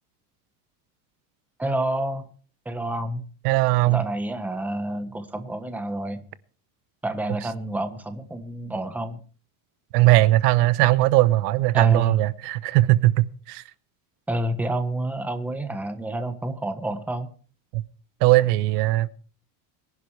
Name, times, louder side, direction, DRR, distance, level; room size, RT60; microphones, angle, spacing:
voice 1, 1.6-2.2 2.6-3.2 3.9-6.2 7.0-9.2 11.7-12.2 14.3-17.3, right 1 dB, 5° right, 1.0 m, -29 dB
voice 2, 3.4-4.0 9.9-13.6 17.7-17.8 18.2-19.1, right 17 dB, 90° right, 1.0 m, -19 dB
24.0 x 11.0 x 3.2 m
cardioid pair, 165°, 46 cm